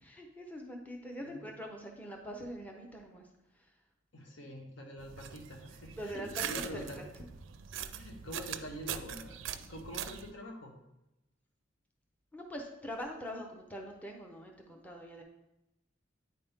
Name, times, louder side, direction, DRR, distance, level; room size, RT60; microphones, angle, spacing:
voice 1, 0.0-3.3 6.0-6.4 6.7-7.0 12.3-15.2, equal, 10° left, 1 dB, 0.7 m, -43 dB
voice 2, 4.1-7.0 7.9-9.4 9.7-10.7, equal, 70° left, 1 dB, 1.2 m, -45 dB
sound 1, 5.0-10.3, right 9 dB, 75° right, 0.4 m, -42 dB
9.3 x 4.2 x 3.5 m, 0.91 s
head